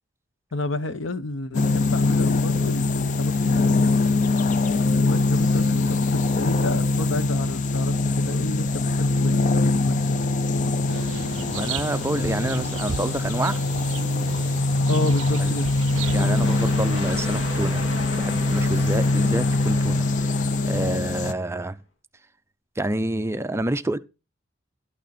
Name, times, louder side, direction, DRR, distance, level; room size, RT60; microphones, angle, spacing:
voice 1, 0.5-3.9 4.7-10.2 14.9-15.7, left 2 dB, 85° left, 0.9 m, -30 dB
sound 1, 1.5-21.3, left 2 dB, 40° left, 0.4 m, -23 dB
sound 2, 10.9-17.2, right 7 dB, 85° right, 0.4 m, -36 dB
voice 2, 11.5-13.6 15.4-15.5 16.1-17.9 18.2-21.8 22.8-24.0, right 1 dB, 15° right, 0.5 m, -28 dB
sound 3, 15.9-21.5, left 1 dB, 65° left, 2.5 m, -35 dB
12.0 x 6.4 x 4.2 m
head